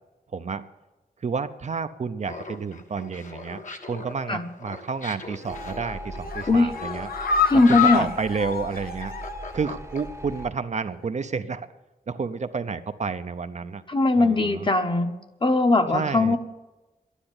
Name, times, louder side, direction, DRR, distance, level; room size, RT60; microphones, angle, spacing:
voice 1, 0.3-0.6 1.2-3.6 3.9-7.1 7.5-9.2 9.5-11.7 12.1-13.8 14.2-14.6 15.9-16.4, right 5 dB, 45° right, 10 dB, 0.6 m, -30 dB
Laughter, 2.2-10.3, left 3 dB, 50° left, 1.3 m, -41 dB
sound 1, 5.4-5.8 6.2-9.6 9.9-10.0 10.4-10.5, left 6 dB, 70° left, 0.8 m, -27 dB
sound 2, 5.5-10.5, equal, 15° right, 0.8 m, -39 dB
voice 2, 7.5-8.1 13.9-15.1 15.4-16.4, left 2 dB, 30° left, 7 dB, 1.0 m, -20 dB
12.0 x 10.0 x 8.7 m, 1.1 s
wide cardioid pair, 160°, 16 cm